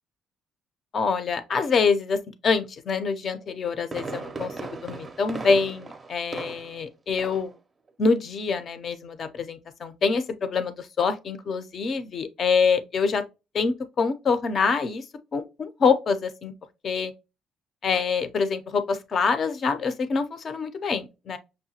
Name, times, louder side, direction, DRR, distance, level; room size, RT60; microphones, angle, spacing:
voice 1, 0.9-7.5 8.0-13.2 13.5-15.0 15.3-16.5 16.8-17.1 17.8-21.4, left 5 dB, 40° left, 0.6 m, -25 dB
Fireworks, 3.4-6.9 7.2-7.6 7.9-8.0, right 3 dB, 20° right, 0.6 m, -37 dB
6.2 x 2.2 x 2.8 m
cardioid pair, 160°, 0 cm